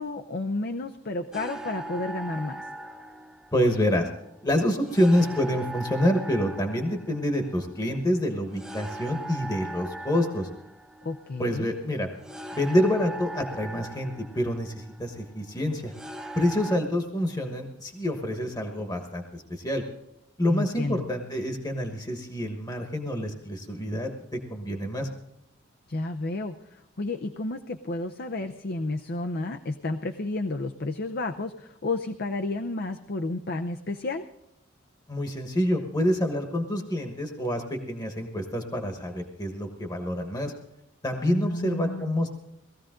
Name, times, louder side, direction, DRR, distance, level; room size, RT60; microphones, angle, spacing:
voice 1, 0.0-2.6 11.0-11.7 20.5-21.1 25.9-34.3 41.2-42.2, left 2 dB, 50° left, 7 dB, 0.7 m, -31 dB
sound 1, 1.3-16.8, right 1 dB, 5° right, 1.1 m, -40 dB
voice 2, 3.5-4.1 4.4-10.5 11.4-12.1 12.5-15.9 16.3-19.8 20.4-25.1 35.1-40.5 41.0-42.3, equal, 20° left, 4 dB, 1.3 m, -27 dB
19.0 x 14.5 x 3.8 m, 0.81 s
head